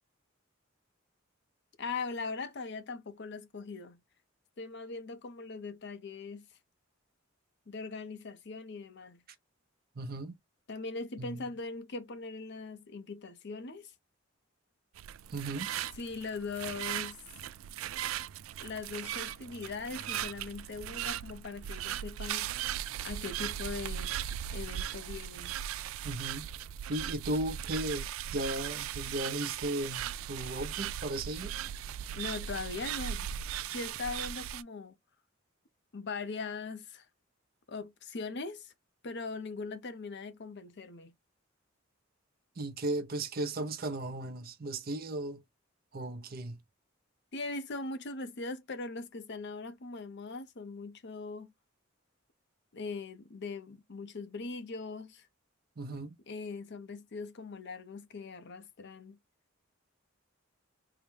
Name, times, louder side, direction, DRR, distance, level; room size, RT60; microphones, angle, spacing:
voice 1, 1.8-4.0 4.6-6.5 7.7-9.2 10.7-13.9 16.0-17.2 18.6-24.2 24.5-25.6 32.1-33.3 33.7-34.9 35.9-37.1 37.7-38.7 39.0-41.1 47.3-51.5 52.7-55.3 56.3-59.2, left 4 dB, 60° left, 0.7 m, -40 dB
voice 2, 10.0-10.3 11.2-11.5 15.3-15.7 26.0-26.5 26.9-31.5 42.6-45.4 45.9-46.6 55.8-56.1, right 1 dB, 50° right, 0.6 m, -36 dB
sound 1, 14.9-34.6, right 10 dB, 85° right, 0.3 m, -38 dB
3.8 x 2.1 x 3.3 m
head